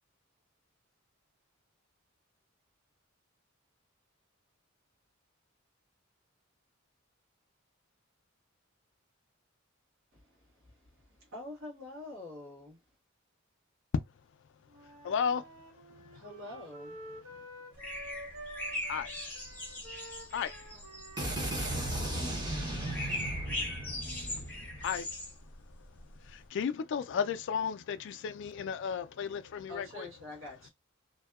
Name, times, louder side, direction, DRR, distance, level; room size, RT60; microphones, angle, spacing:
voice 1, 10.1-12.8 16.1-17.0 20.7-20.8 29.7-30.7, left 2 dB, 65° right, 1.2 m, -46 dB
Wind instrument woodwind instrument, 14.7-22.8, right 1 dB, 85° right, 0.9 m, -50 dB
voice 2, 15.1-15.4 18.9-19.1 20.3-20.5 24.8-25.0 26.5-30.1, left 7 dB, 60° left, 0.3 m, -33 dB
sound 1, 17.8-26.5, left 1 dB, 10° left, 0.8 m, -41 dB
voice 3, 21.2-24.9, right 1 dB, 20° right, 0.8 m, -36 dB
2.6 x 2.2 x 2.3 m
head